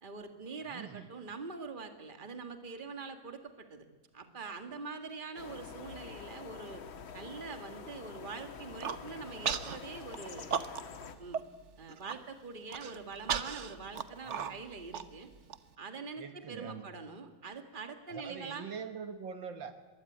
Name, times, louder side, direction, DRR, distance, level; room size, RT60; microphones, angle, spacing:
voice 1, 0.0-3.9 4.1-6.8 7.1-10.5 11.2-11.5 11.8-15.3 15.8-18.7, right 4 dB, 25° right, 7 dB, 2.0 m, -44 dB
voice 2, 0.6-1.1 14.2-14.6 16.2-16.9 18.1-19.7, right 6 dB, 65° right, 9 dB, 2.0 m, -43 dB
sound 1, 5.4-11.2, left 6 dB, 70° left, 2.4 m, -47 dB
Human voice, 8.6-9.0 9.5-9.8 10.1-11.0 11.3-11.4 11.8-12.2 12.7-15.6, right 7 dB, 45° right, 1.0 m, -35 dB
24.5 x 22.0 x 9.4 m, 1.2 s
omnidirectional pair, 2.3 m